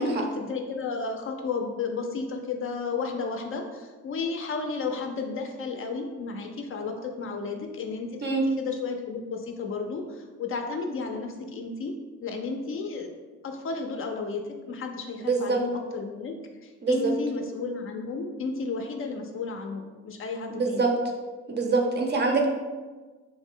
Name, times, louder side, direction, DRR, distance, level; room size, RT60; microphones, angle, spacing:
voice 1, 0.0-11.9 12.2-13.1 13.4-14.4 14.7-16.4 16.6-20.8, left 4 dB, 45° left, 4 dB, 0.4 m, -32 dB
voice 2, 15.3-15.6 16.8-17.1 20.5-20.9 21.5-22.5, right 4 dB, 35° right, 1 dB, 0.5 m, -24 dB
3.2 x 2.1 x 3.6 m, 1.3 s
cardioid pair, 90°, 30 cm